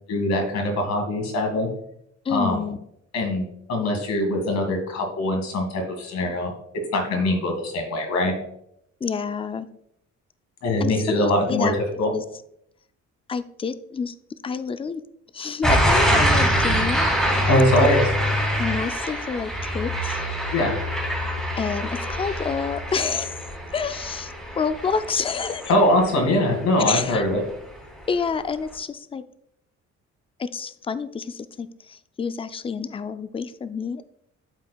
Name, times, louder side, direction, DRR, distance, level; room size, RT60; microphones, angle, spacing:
voice 1, 0.1-1.7 2.3-2.6 3.1-6.5 6.9-8.3 10.6-12.1 17.5-18.0 20.5-20.8 25.7-27.4, left 1 dB, 65° left, 2 dB, 2.2 m, -22 dB
voice 2, 2.3-2.8 9.0-9.7 10.8-11.7 12.1-12.2 13.3-14.1 14.4-15.0 15.3-17.1 18.6-20.2 21.6-23.3 23.7-25.7 26.8-27.2 28.1-29.2 30.4-34.0, left 5 dB, 20° left, 12 dB, 0.4 m, -28 dB
sound 1, 15.6-26.5 26.9-27.3, equal, ahead, 2.8 m, -24 dB
11.0 x 4.4 x 2.4 m, 0.74 s
cardioid pair, 90°, 30 cm